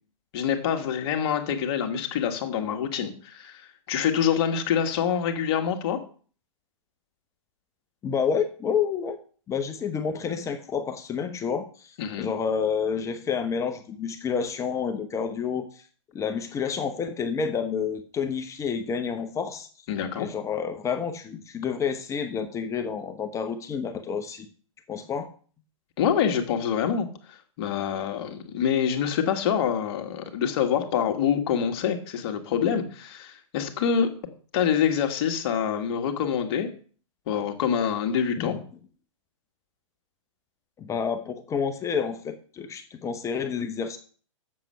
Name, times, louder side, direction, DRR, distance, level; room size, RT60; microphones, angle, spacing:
voice 1, 0.3-6.0 12.0-12.3 19.9-20.3 26.0-34.1 34.5-36.7 37.3-38.5, left 8 dB, 50° left, 5 dB, 1.9 m, -26 dB
voice 2, 8.0-9.2 9.5-15.9 16.1-19.7 20.2-24.5 24.9-25.3 38.4-38.6 40.8-44.0, left 6 dB, 20° left, 8 dB, 0.9 m, -29 dB
7.6 x 7.5 x 5.7 m, 0.42 s
hypercardioid pair, 125°, 17 cm